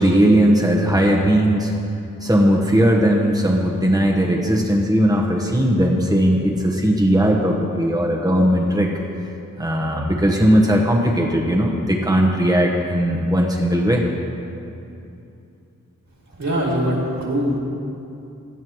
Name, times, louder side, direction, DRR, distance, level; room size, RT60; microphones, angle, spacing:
voice 1, 0.0-1.7 2.2-8.9 9.6-14.0, equal, 10° right, -1 dB, 1.1 m, -18 dB
voice 2, 16.3-17.6, equal, 60° right, -3 dB, 2.5 m, -22 dB
16.5 x 10.5 x 3.1 m, 2.7 s
cardioid pair, 50°, 32 cm